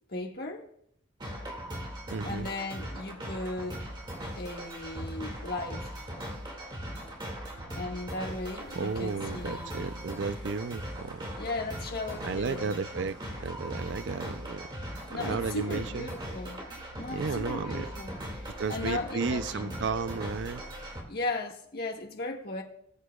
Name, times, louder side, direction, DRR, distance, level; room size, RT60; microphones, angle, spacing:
voice 1, 0.1-0.6 2.2-3.8 4.3-5.9 7.8-9.7 11.4-12.7 15.1-16.6 17.0-18.2 18.7-19.8 21.1-22.6, left 2 dB, 50° left, 1.6 m, -36 dB
sound 1, 1.2-21.0, equal, 25° right, 2.1 m, -39 dB
voice 2, 2.1-2.5 8.7-11.3 12.2-14.7 15.1-16.1 17.1-17.9 18.5-20.6, right 4 dB, 70° right, 0.5 m, -33 dB
19.0 x 8.3 x 2.3 m
head